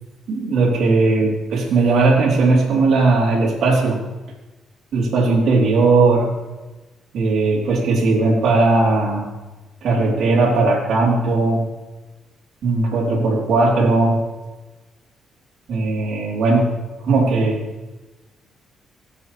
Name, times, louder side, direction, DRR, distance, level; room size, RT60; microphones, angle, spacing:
voice 1, 0.3-4.0 4.9-6.3 7.1-9.3 9.8-11.6 12.6-14.2 15.7-16.7 17.0-17.6, right 3 dB, 70° right, -4 dB, 3.4 m, -17 dB
18.0 x 8.4 x 3.2 m, 1.1 s
cardioid pair, 90°, 0 cm